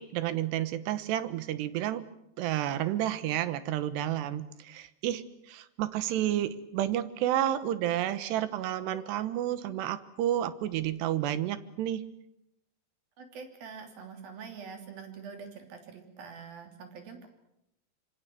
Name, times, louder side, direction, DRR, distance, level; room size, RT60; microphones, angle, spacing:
voice 1, 0.0-2.0 2.4-12.0, right 12 dB, 80° right, 14 dB, 3.3 m, -31 dB
voice 2, 13.2-17.3, right 5 dB, 60° right, 5 dB, 4.7 m, -45 dB
26.0 x 25.0 x 7.7 m, 0.82 s
omnidirectional pair, 4.9 m